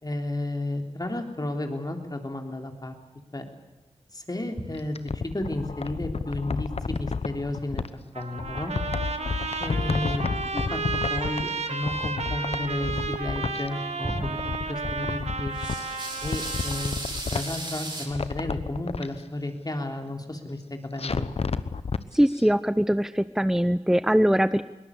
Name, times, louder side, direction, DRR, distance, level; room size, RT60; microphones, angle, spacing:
voice 1, 0.0-2.9 3.3-3.5 4.1-5.0 5.2-7.8 8.1-8.7 9.6-10.2 10.5-10.8 11.1-14.4 14.7-15.5 16.2-17.0 17.3-21.3, left 1 dB, 35° left, 4 dB, 3.5 m, -32 dB
sound 1, 4.5-8.2 8.5-9.6 9.8-9.9 10.4-11.7 12.1-13.3 13.7-14.7 15.1-18.1, right 2 dB, 45° right, 5.8 m, -38 dB
sound 2, 4.7-7.9 8.4-11.6 11.8-13.7 14.0-15.9 16.2-17.7 18.1-19.1 21.0-22.0 22.4-22.5, left 5 dB, 60° left, 1.0 m, -31 dB
Trumpet, 8.1-17.1, right 4 dB, 65° right, 1.9 m, -32 dB
voice 2, 22.1-24.6, equal, 5° right, 14 dB, 0.7 m, -22 dB
22.5 x 18.5 x 8.4 m, 1.0 s
cardioid pair, 40°, 12 cm